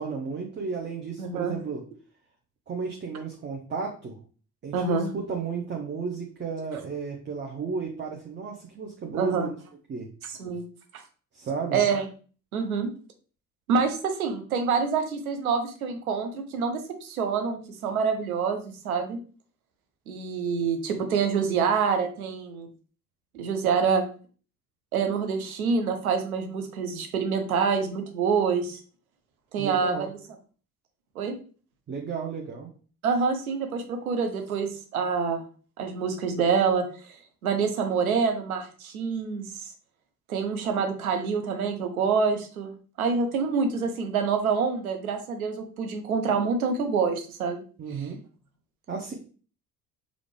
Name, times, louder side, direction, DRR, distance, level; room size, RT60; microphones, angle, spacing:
voice 1, 0.0-1.8 2.7-4.2 4.6-9.6 9.9-10.1 11.3-11.8 29.6-30.1 31.9-32.7 47.8-48.2 48.9-49.1, right 5 dB, 25° right, 2 dB, 0.7 m, -33 dB
voice 2, 1.2-1.6 4.7-5.1 9.1-9.5 10.4-10.6 10.9-11.0 11.7-12.0 12.5-12.9 13.7-19.2 20.1-22.7 23.3-24.0 24.9-28.8 29.5-30.1 31.2-31.3 33.0-35.4 35.8-37.1 37.4-39.5 40.3-47.6, right 5 dB, 75° right, 6 dB, 0.8 m, -26 dB
4.9 x 2.5 x 3.1 m, 0.40 s
figure-of-eight pair, 50°, 43 cm